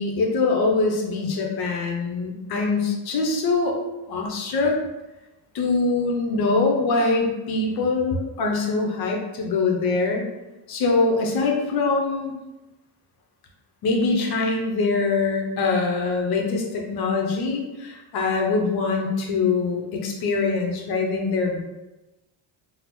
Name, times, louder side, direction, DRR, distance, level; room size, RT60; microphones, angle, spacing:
voice 1, 0.0-3.7 4.1-4.8 5.5-10.3 10.7-12.3 13.8-21.6, left 3 dB, 55° left, 1 dB, 0.7 m, -23 dB
3.7 x 2.0 x 3.0 m, 1.0 s
cardioid pair, 160°, 45 cm